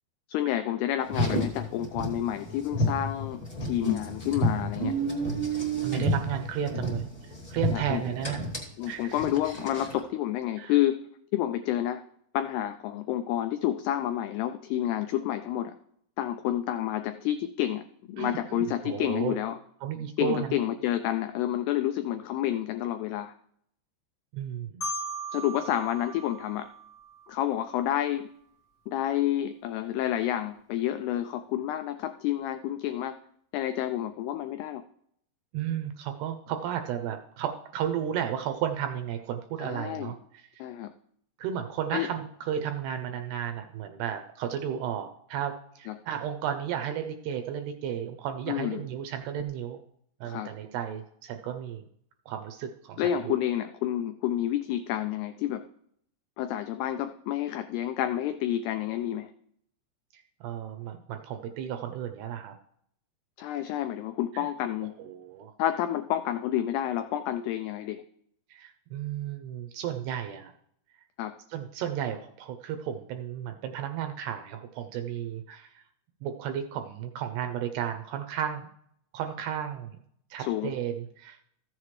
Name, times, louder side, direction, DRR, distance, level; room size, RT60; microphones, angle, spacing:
voice 1, 0.3-5.0 7.7-8.0 8.8-11.1 11.3-12.0 12.3-15.8 16.2-17.8 18.1-19.6 20.2-23.3 25.3-26.7 27.3-28.3 28.9-33.2 33.5-34.8 39.6-40.1 40.6-40.9 41.9-42.1 45.9-46.0 48.5-48.8 50.2-50.5 53.0-55.7 56.4-59.3 63.4-64.9 65.6-68.0 71.2-71.4 80.4-80.7, left 12 dB, 90° left, 8 dB, 2.3 m, -29 dB
Car, 1.0-10.0, equal, 25° left, 0.9 m, -31 dB
voice 2, 4.8-5.3 5.8-7.1 7.5-8.4 8.9-9.2 10.6-10.7 18.2-19.4 19.8-20.6 24.3-24.8 35.5-40.6 41.4-49.8 50.2-51.8 52.3-53.4 60.1-62.6 64.3-64.5 65.0-65.5 68.5-70.5 71.5-75.8 76.2-78.7 79.1-80.0 80.3-81.4, right 9 dB, 80° right, 6 dB, 2.4 m, -33 dB
Marimba xylophone, 24.8-27.6, right 2 dB, 65° left, 1.1 m, -38 dB
14.5 x 7.4 x 3.2 m, 0.68 s
omnidirectional pair, 5.3 m